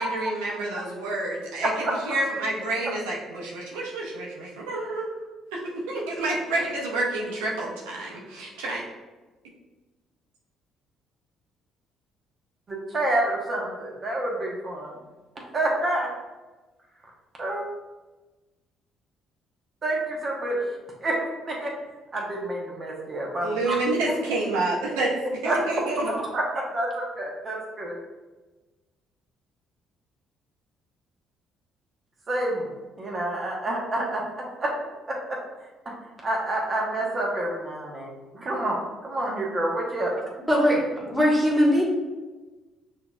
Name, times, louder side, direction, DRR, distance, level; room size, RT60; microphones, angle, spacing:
voice 1, 0.0-1.7 2.1-8.8 23.4-25.1 25.4-26.1, right 2 dB, 90° right, -3 dB, 0.6 m, -29 dB
voice 2, 12.7-15.0 15.5-16.1 17.4-17.7 19.8-20.6 21.0-21.2 21.5-21.7 22.1-23.8 25.4-25.6 26.0-28.0 32.3-32.7 33.0-34.7 35.1-35.4 35.8-35.9 36.2-38.8 39.0-40.1, right 1 dB, 40° right, -1 dB, 1.1 m, -28 dB
voice 3, 40.5-40.8 41.1-41.8, equal, 5° right, -5 dB, 1.5 m, -20 dB
5.6 x 2.7 x 2.4 m, 1.2 s
supercardioid pair, 60°, 0 cm